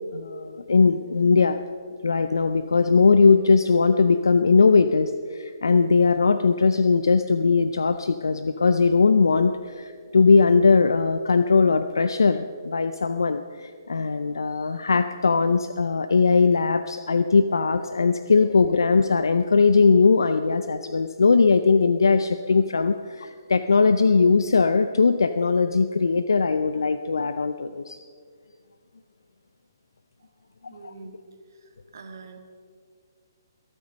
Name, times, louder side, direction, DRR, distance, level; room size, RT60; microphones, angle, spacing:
voice 1, 0.1-1.6 2.0-28.0 30.6-30.9, left 4 dB, 80° left, 10 dB, 0.6 m, -20 dB
voice 2, 30.7-31.2 31.6-32.4, right 4 dB, 60° right, 4 dB, 2.2 m, -44 dB
23.0 x 9.0 x 5.2 m, 2.1 s
figure-of-eight pair, 140°, 2 cm